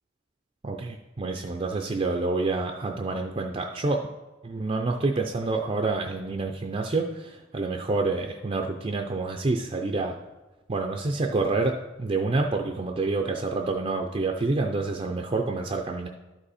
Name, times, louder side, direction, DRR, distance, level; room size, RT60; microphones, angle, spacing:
voice 1, 0.6-4.1 4.4-10.1 10.7-16.1, right 3 dB, 30° right, 3 dB, 0.5 m, -28 dB
11.5 x 5.3 x 4.2 m, 1.1 s
head